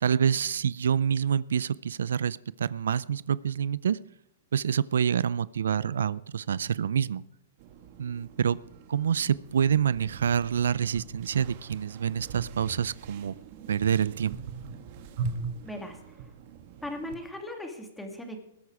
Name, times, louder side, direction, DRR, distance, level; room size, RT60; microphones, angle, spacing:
voice 1, 0.0-4.0 4.5-7.2 8.0-8.6 8.9-13.3 13.7-14.4, right 8 dB, 80° right, 20 dB, 0.4 m, -27 dB
sound 1, 7.6-17.2, right 4 dB, 50° right, 1.7 m, -41 dB
voice 2, 15.6-16.2 16.8-18.4, left 1 dB, 5° left, 4 dB, 2.5 m, -38 dB
20.0 x 8.6 x 4.8 m, 0.80 s
hypercardioid pair, 135°, 0 cm